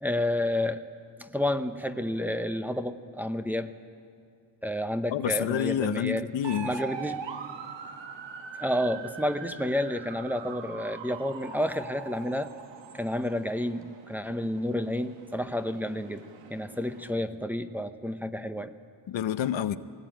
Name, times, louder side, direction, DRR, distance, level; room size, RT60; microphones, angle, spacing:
voice 1, 0.0-0.8 1.2-3.7 4.6-6.3 6.6-7.2 8.6-12.5 12.9-18.7, left 1 dB, 5° right, 7 dB, 0.9 m, -30 dB
voice 2, 5.1-6.7 19.1-19.8, left 10 dB, 80° left, 11 dB, 0.8 m, -28 dB
sound 1, 6.4-17.1, right 6 dB, 75° right, 1.3 m, -42 dB
22.5 x 18.5 x 9.0 m, 2.4 s
cardioid pair, 95°, 44 cm